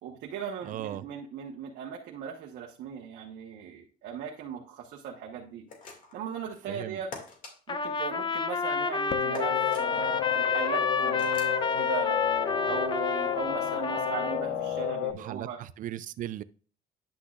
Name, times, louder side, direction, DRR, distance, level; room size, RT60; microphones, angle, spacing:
voice 1, 0.0-5.6 6.1-7.1 7.7-12.2 12.7-15.6, right 7 dB, 80° right, 1.2 m, -38 dB
voice 2, 0.6-1.0 6.7-7.0 15.1-16.4, right 12 dB, 50° right, 0.4 m, -37 dB
sound 1, 5.7-6.3 7.1-7.5 9.3-9.9 11.2-11.6, left 4 dB, 55° left, 2.2 m, -43 dB
Trumpet, 7.7-14.4, left 5 dB, 30° left, 0.6 m, -29 dB
sound 2, 9.1-15.1, left 8 dB, 75° left, 0.6 m, -31 dB
10.0 x 6.1 x 2.4 m
cardioid pair, 110°, 17 cm